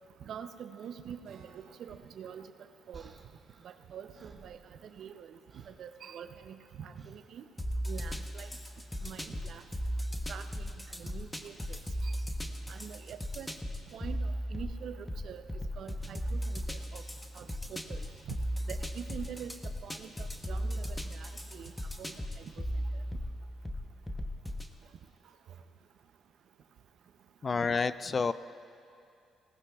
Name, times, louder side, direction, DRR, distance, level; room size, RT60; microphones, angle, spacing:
voice 1, 0.2-2.5 2.9-3.1 3.6-4.6 5.0-5.3 5.7-7.4 7.9-8.5 9.0-9.6 10.3-10.7 11.0-11.8 12.0-12.1 12.7-13.5 13.9-15.4 15.8-17.0 17.4-18.0 18.3-18.4 18.7-19.5 19.8-21.7 22.0-22.1 22.6-22.7, right 8 dB, 65° right, 9 dB, 0.6 m, -45 dB
Acoustic guitar, 1.2-5.0, right 5 dB, 90° right, 1.7 m, -62 dB
sound 1, 2.9-5.2 5.5-5.9 6.9-7.3 8.6-8.9, right 3 dB, 35° right, 1.3 m, -57 dB
sound 2, 7.6-24.7, equal, 10° left, 0.9 m, -37 dB
voice 2, 27.4-28.3, left 4 dB, 35° left, 15 dB, 0.3 m, -29 dB
20.0 x 18.0 x 2.4 m, 2.5 s
cardioid pair, 90°, 0 cm